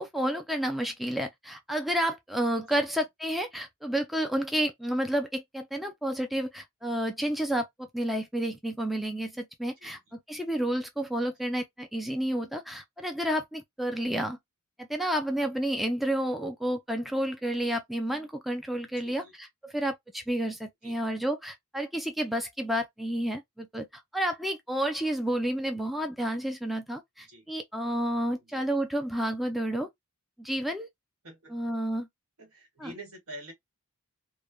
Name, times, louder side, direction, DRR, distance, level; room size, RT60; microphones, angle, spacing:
voice 1, 0.0-14.4 14.8-29.9 30.4-30.9 31.5-32.1 32.8-32.9, right 1 dB, ahead, 0.4 m, -30 dB
voice 2, 9.8-10.1 18.9-19.3 20.8-21.0 27.3-27.5 28.4-28.7 31.2-31.7 32.4-33.5, right 1 dB, 70° right, 1.5 m, -47 dB
3.2 x 2.2 x 2.2 m
head